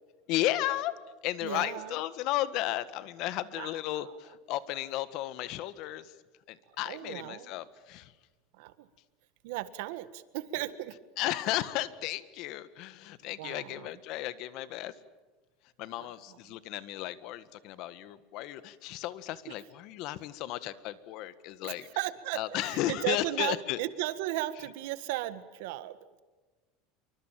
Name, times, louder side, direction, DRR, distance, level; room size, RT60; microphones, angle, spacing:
voice 1, 0.3-0.9 1.2-6.1 6.5-8.1 11.2-14.9 15.8-21.9 22.3-23.8, left 14 dB, 55° left, 15 dB, 1.5 m, -34 dB
voice 2, 1.4-2.0 3.5-4.2 6.7-7.5 8.5-8.9 9.4-11.0 13.4-13.9 16.0-16.1 16.5-16.6 21.6-26.2, right 15 dB, 75° right, 13 dB, 1.6 m, -36 dB
27.5 x 24.5 x 7.5 m, 1.3 s
supercardioid pair, 145°, 0 cm